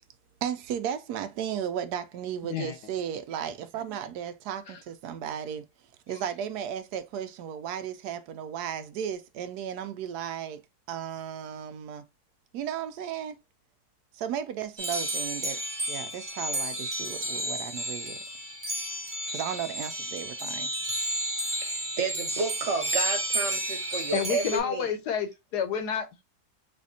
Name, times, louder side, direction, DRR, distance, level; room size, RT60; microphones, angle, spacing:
voice 1, 0.4-5.7 6.1-10.6 10.9-12.0 12.5-13.4 14.1-15.6 15.9-18.2 19.3-20.7, right 9 dB, 80° right, 1.1 m, -35 dB
sound 1, 14.8-24.6, right 1 dB, 25° right, 0.8 m, -32 dB
voice 2, 21.6-24.9, right 4 dB, 55° right, 1.1 m, -31 dB
voice 3, 24.1-26.2, left 7 dB, 90° left, 1.5 m, -30 dB
4.2 x 2.7 x 2.6 m
omnidirectional pair, 1.7 m